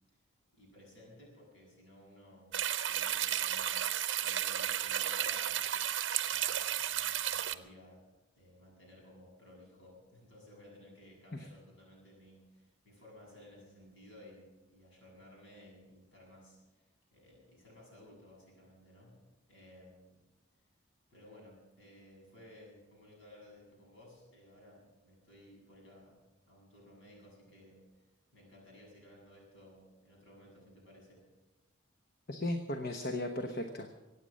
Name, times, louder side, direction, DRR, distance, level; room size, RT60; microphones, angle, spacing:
voice 1, 0.5-5.7 6.2-8.1 8.4-19.2 19.5-20.2 21.1-28.1 28.3-31.2, left 1 dB, 70° left, -2 dB, 7.7 m, -57 dB
sound 1, 2.5-7.5, right 11 dB, 60° right, 0.8 m, -33 dB
voice 2, 32.3-33.9, left 1 dB, 50° left, 5 dB, 1.1 m, -36 dB
24.0 x 9.1 x 6.5 m, 1.1 s
head